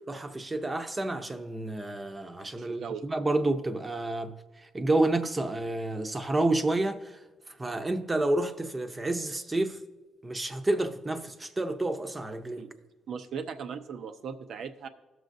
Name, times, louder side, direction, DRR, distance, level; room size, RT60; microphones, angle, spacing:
voice 1, 0.1-4.3 4.7-7.0 7.6-9.8 10.2-12.6, right 2 dB, 20° right, 0.7 m, -29 dB
voice 2, 2.6-3.0 12.6-12.7 13.1-14.9, right 6 dB, 65° right, 0.7 m, -38 dB
17.0 x 6.3 x 2.6 m
cardioid pair, 90°, 0 cm